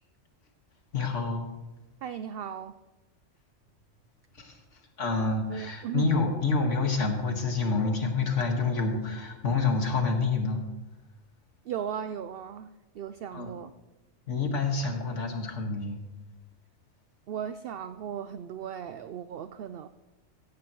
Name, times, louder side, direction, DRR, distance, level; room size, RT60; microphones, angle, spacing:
voice 1, 0.9-1.5 4.4-4.5 5.0-10.6 13.3-13.5 14.3-16.0, left 4 dB, 75° left, 3 dB, 2.1 m, -28 dB
voice 2, 2.0-2.7 5.5-6.1 11.6-13.7 17.3-19.9, right 9 dB, 60° right, 11 dB, 0.7 m, -37 dB
16.0 x 14.5 x 3.1 m, 1.1 s
omnidirectional pair, 1.2 m